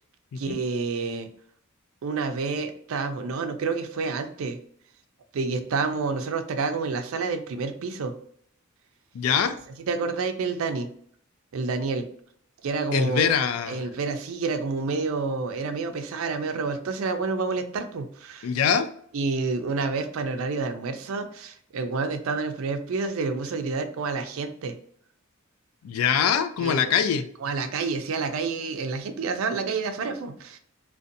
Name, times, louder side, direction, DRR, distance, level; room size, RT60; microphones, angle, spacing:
voice 1, 0.4-1.3 2.0-4.6 5.3-8.1 9.9-10.9 11.5-12.1 12.6-18.5 19.1-24.8 26.6-26.9 27.4-30.6, right 4 dB, 75° right, 8 dB, 0.4 m, -29 dB
voice 2, 9.1-9.6 12.9-13.8 18.4-18.9 25.8-27.3, left 7 dB, 85° left, 11 dB, 0.3 m, -23 dB
2.6 x 2.2 x 2.5 m, 0.63 s
head